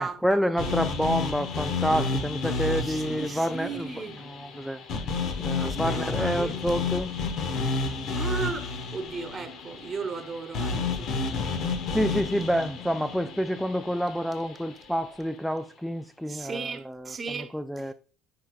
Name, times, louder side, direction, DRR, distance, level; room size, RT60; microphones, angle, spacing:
voice 1, 0.0-4.9 5.4-7.1 11.4-11.5 11.9-17.9, equal, ahead, 0.4 m, -28 dB
voice 2, 0.5-0.9 2.8-4.3 5.6-6.6 8.1-11.5 16.3-17.9, right 5 dB, 30° right, 1.2 m, -36 dB
sound 1, 0.6-14.7, left 4 dB, 60° left, 1.3 m, -31 dB
10.5 x 5.0 x 2.4 m
supercardioid pair, 90°, 0 cm